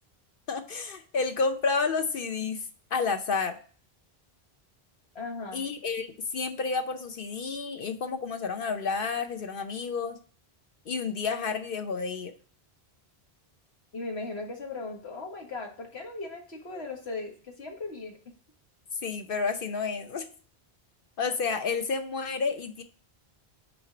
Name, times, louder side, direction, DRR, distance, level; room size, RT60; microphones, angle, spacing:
voice 1, 0.5-2.6 2.9-3.6 5.5-10.2 10.9-12.3 19.0-20.3 21.2-22.8, left 4 dB, 60° left, 7 dB, 0.8 m, -30 dB
voice 2, 5.2-5.6 13.9-18.3, left 3 dB, 90° left, 1 dB, 1.9 m, -38 dB
6.1 x 4.2 x 5.9 m, 0.41 s
omnidirectional pair, 1.1 m